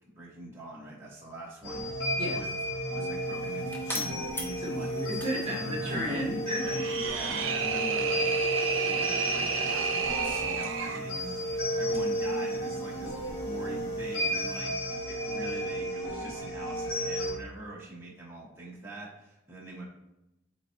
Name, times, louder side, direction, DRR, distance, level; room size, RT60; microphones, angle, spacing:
voice 1, 0.1-2.5 2.9-4.9 5.5-6.2 6.9-8.3 8.8-14.7 15.1-19.8, right 1 dB, 15° right, -6 dB, 1.6 m, -43 dB
sound 1, 1.6-17.3, equal, 85° left, 2.3 m, -33 dB
Turning On PC Computer, 2.9-14.6, left 1 dB, 10° left, 0.9 m, -47 dB
voice 2, 4.6-6.8, equal, 30° right, -2 dB, 1.5 m, -33 dB
sound 2, 6.6-11.0, right 5 dB, 80° right, 0.7 m, -31 dB
8.3 x 4.1 x 3.0 m, 0.91 s
head